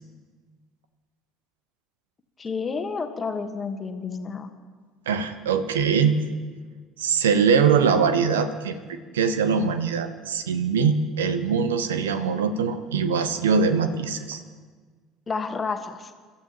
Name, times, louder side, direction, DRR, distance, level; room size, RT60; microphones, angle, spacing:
voice 1, 2.4-4.5 15.3-16.1, left 5 dB, 25° left, 7 dB, 1.4 m, -30 dB
voice 2, 5.1-6.3 7.0-14.4, right 6 dB, 70° right, 10 dB, 0.9 m, -22 dB
30.0 x 13.5 x 3.0 m, 1.5 s
figure-of-eight pair, 60°, 0 cm